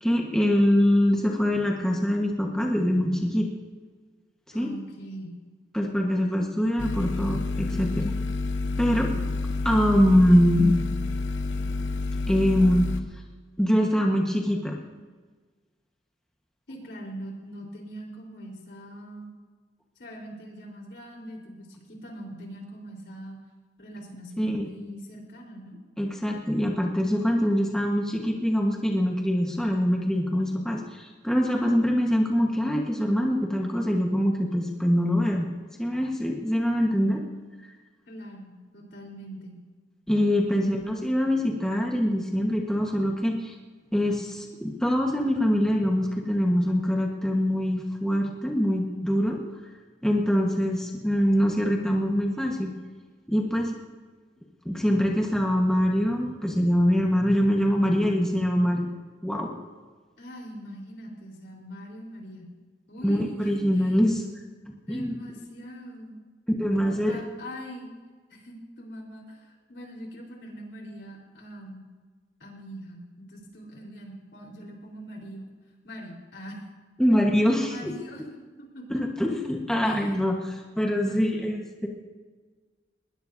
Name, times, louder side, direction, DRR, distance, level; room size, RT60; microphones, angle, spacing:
voice 1, 0.0-3.5 4.5-4.7 5.7-8.1 8.8-9.2 9.6-10.8 12.3-12.9 13.6-14.8 24.4-24.7 26.0-35.4 35.8-37.2 40.1-43.5 43.9-49.4 50.0-52.7 53.3-53.7 54.6-58.9 59.2-59.5 63.0-64.2 64.7-65.1 66.5-67.1 77.0-77.9 78.9-81.9, equal, 5° left, -1 dB, 1.3 m, -24 dB
voice 2, 4.5-5.3 16.7-19.3 20.0-23.4 23.8-25.8 38.1-39.6 40.5-41.0 60.2-62.5 62.9-64.0 64.8-66.2 66.7-67.9 68.3-71.8 72.4-75.4 75.8-76.6 77.7-79.0 79.8-80.1 81.0-81.4, equal, 65° left, 0 dB, 4.1 m, -42 dB
sound 1, 6.8-13.0, left 3 dB, 85° left, 0.9 m, -29 dB
20.5 x 20.0 x 2.7 m, 1.4 s
head